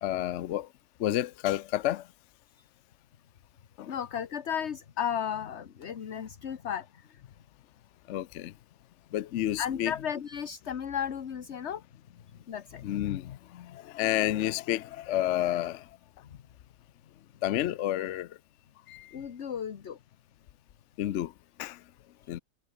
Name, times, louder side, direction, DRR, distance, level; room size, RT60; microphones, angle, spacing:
voice 1, 0.0-0.7 1.0-2.0 3.8-3.9 8.1-8.5 9.1-9.9 12.8-15.8 17.4-18.3 18.9-19.1 21.0-21.3 21.6-21.8 22.3-22.4, left 13 dB, 70° left, 0.7 m, -30 dB
voice 2, 3.9-7.2 9.6-11.8 12.5-12.8 16.3-16.4 19.1-20.0, left 8 dB, 45° left, 1.2 m, -34 dB
omnidirectional pair, 1.9 m